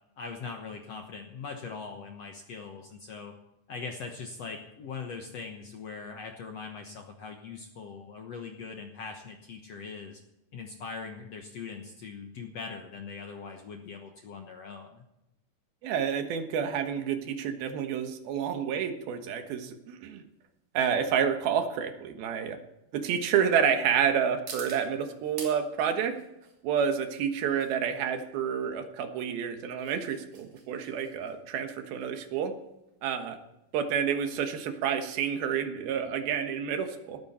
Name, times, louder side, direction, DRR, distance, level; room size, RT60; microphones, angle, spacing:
voice 1, 0.2-3.3 3.7-10.2 10.5-15.0, left 5 dB, 70° left, 3 dB, 1.5 m, -41 dB
voice 2, 15.8-20.2 20.7-22.6 22.9-26.1 26.6-32.5 33.0-33.4 33.7-37.2, right 7 dB, 70° right, 7 dB, 3.1 m, -29 dB
sound 1, 18.9-35.5, right 4 dB, 50° right, 4.3 m, -51 dB
18.5 x 14.0 x 4.3 m, 0.89 s
omnidirectional pair, 4.7 m